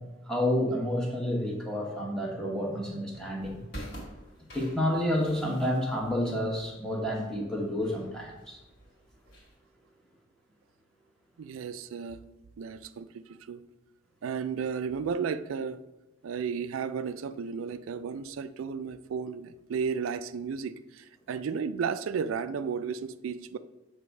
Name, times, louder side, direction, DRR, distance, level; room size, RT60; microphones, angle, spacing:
voice 1, 0.3-3.6 4.5-8.6, left 1 dB, 5° left, -2 dB, 1.1 m, -29 dB
sound 1, 3.1-9.6, equal, 55° left, 2.3 m, -48 dB
voice 2, 11.4-12.2 12.6-13.6 14.2-15.8 16.2-23.6, right 6 dB, 85° right, 13 dB, 0.3 m, -33 dB
7.7 x 3.4 x 5.2 m, 1.0 s
head